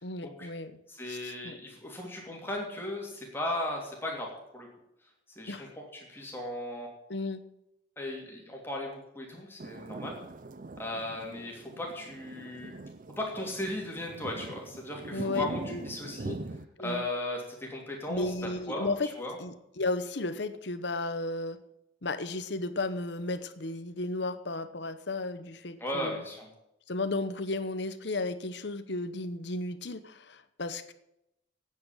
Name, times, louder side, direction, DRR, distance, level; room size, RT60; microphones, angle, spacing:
voice 1, 0.0-0.8 1.1-1.6 5.5-5.7 7.1-7.4 9.3-9.4 15.1-15.8 16.8-17.0 18.1-19.1 19.4-21.6 22.0-26.2 26.9-30.9, left 2 dB, 60° left, 11 dB, 1.0 m, -34 dB
voice 2, 0.9-4.3 4.5-4.7 5.4-5.5 5.9-6.9 8.0-10.2 10.8-12.8 13.2-16.4 16.8-18.3 18.7-19.4 25.8-26.5, left 1 dB, 10° left, -1 dB, 3.0 m, -36 dB
sound 1, 9.6-16.6, right 2 dB, 45° right, 0.6 m, -42 dB
9.6 x 8.7 x 8.9 m, 0.85 s
head